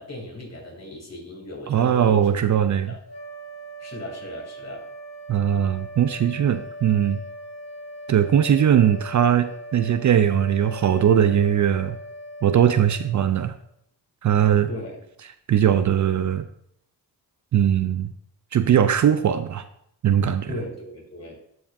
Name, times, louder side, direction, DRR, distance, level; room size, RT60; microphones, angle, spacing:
voice 1, 0.0-2.3 2.9-3.0 3.8-4.8 14.7-15.0 20.5-21.4, left 1 dB, 40° left, -1 dB, 3.1 m, -36 dB
voice 2, 1.7-2.9 5.3-7.2 8.1-12.0 12.4-13.5 14.2-14.7 15.5-16.4 17.5-18.1 18.5-19.6 20.0-20.5, right 9 dB, 50° right, 10 dB, 0.5 m, -20 dB
sound 1, 3.0-13.6, equal, 85° left, 2.6 m, -40 dB
12.5 x 4.9 x 2.6 m, 0.72 s
cardioid pair, 65°, 40 cm